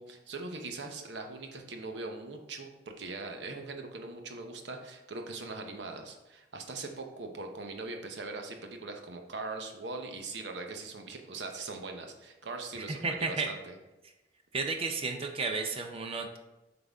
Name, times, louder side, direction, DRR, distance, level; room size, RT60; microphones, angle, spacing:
voice 1, 0.0-13.8, right 3 dB, 75° right, 4 dB, 0.8 m, -41 dB
voice 2, 12.8-13.5 14.5-16.4, right 4 dB, 30° right, 5 dB, 0.5 m, -33 dB
7.7 x 3.9 x 3.5 m, 1.0 s
head